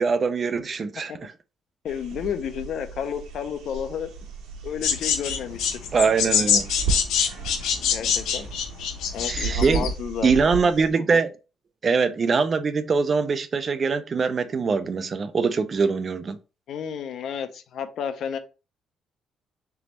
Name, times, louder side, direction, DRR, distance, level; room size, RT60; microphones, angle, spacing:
voice 1, 0.0-1.3 5.9-6.7 9.3-9.9 10.2-11.3 11.8-16.4, right 5 dB, 30° right, 0.4 m, -23 dB
voice 2, 1.8-4.1 4.6-5.6 7.9-8.5 9.1-10.3 11.0-11.2 16.7-18.4, left 8 dB, 55° left, 0.5 m, -31 dB
sound 1, 1.9-10.9, right 4 dB, 85° right, 1.2 m, -34 dB
sound 2, 4.8-9.9, left 7 dB, 85° left, 0.7 m, -24 dB
3.8 x 3.4 x 3.0 m
cardioid pair, 155°, 0 cm